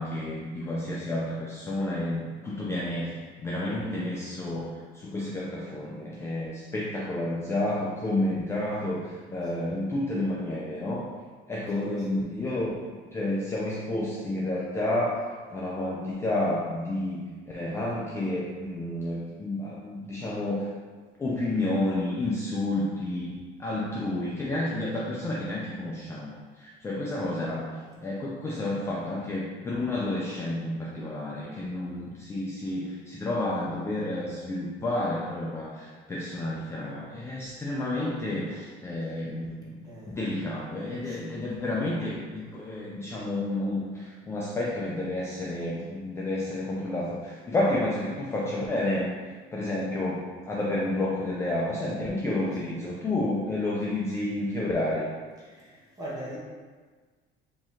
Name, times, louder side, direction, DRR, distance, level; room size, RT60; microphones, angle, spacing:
voice 1, 0.0-11.1 11.5-12.7 13.1-17.2 17.5-20.7 21.2-23.3 23.6-39.7 40.1-49.1 49.5-55.1, left 1 dB, 15° left, -5 dB, 0.3 m, -30 dB
voice 2, 11.8-12.2 39.8-40.2 41.0-41.4 52.6-52.8 55.4-56.4, right 1 dB, 20° right, -6 dB, 1.0 m, -42 dB
4.8 x 2.8 x 3.4 m, 1.4 s
cardioid pair, 180°, 19 cm